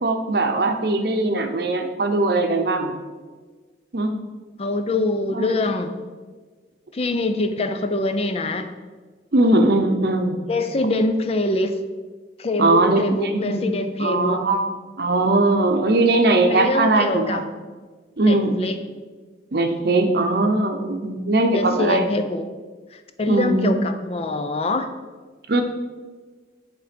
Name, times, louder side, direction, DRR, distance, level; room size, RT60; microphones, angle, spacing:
voice 1, 0.0-3.0 3.9-4.1 5.3-5.5 9.3-10.4 12.6-13.7 14.0-14.6 15.0-17.4 18.2-18.6 19.5-22.1 23.3-23.8 25.5-25.6, right 2 dB, 60° right, 6 dB, 0.7 m, -20 dB
voice 2, 4.6-6.0 6.9-8.7 10.5-11.8 12.4-14.4 16.5-17.4 18.3-18.8 21.5-22.5 22.9-24.9, left 2 dB, 35° left, 8 dB, 0.5 m, -24 dB
10.5 x 3.5 x 5.1 m, 1.4 s
head